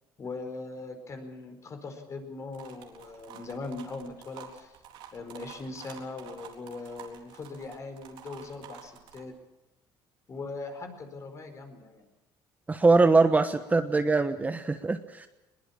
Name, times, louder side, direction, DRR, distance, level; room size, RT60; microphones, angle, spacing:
voice 1, 0.2-4.8 5.1-9.3 10.3-12.0, left 3 dB, 35° left, 6 dB, 4.8 m, -40 dB
sound 1, 2.5-9.2, right 9 dB, 75° right, 4.0 m, -49 dB
voice 2, 12.7-15.3, right 3 dB, 20° right, 9 dB, 1.2 m, -22 dB
21.5 x 20.5 x 7.4 m, 0.98 s
cardioid pair, 115°, 9 cm